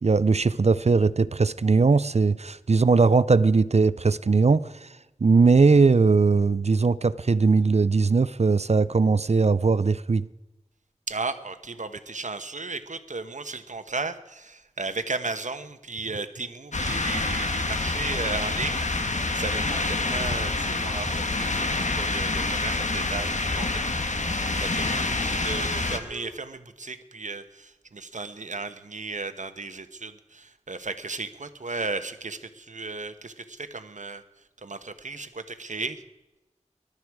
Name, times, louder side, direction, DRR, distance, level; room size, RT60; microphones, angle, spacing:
voice 1, 0.0-4.9 5.2-10.3, right 4 dB, 60° right, 0.5 m, -20 dB
voice 2, 11.1-34.2 34.6-36.0, right 3 dB, 80° right, 1.1 m, -35 dB
sound 1, 16.7-26.0, left 2 dB, 75° left, 1.4 m, -27 dB
Singing, 21.5-26.6, left 1 dB, 5° left, 4.4 m, -48 dB
20.5 x 12.5 x 4.8 m
wide cardioid pair, 40°, 13 cm